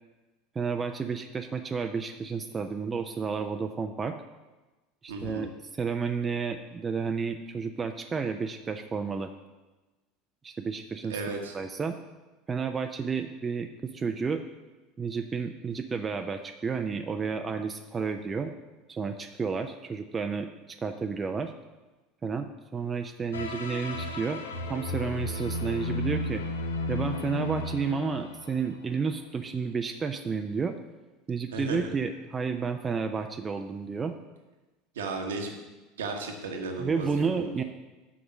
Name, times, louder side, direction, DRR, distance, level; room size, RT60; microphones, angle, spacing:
voice 1, 0.6-4.2 5.0-9.3 10.4-11.2 11.5-12.0 12.5-14.4 15.0-18.5 18.9-21.5 22.2-24.4 24.7-26.4 26.9-30.8 31.3-34.1 36.8-37.6, right 5 dB, 25° right, 6 dB, 0.5 m, -31 dB
voice 2, 5.1-5.5 11.1-11.6 31.5-31.9 34.9-35.5 36.0-37.5, right 3 dB, 70° right, 3 dB, 1.2 m, -34 dB
sound 1, 23.3-29.1, left 2 dB, 75° left, 0.7 m, -34 dB
6.2 x 6.0 x 7.2 m, 1.2 s
figure-of-eight pair, 75°, 0 cm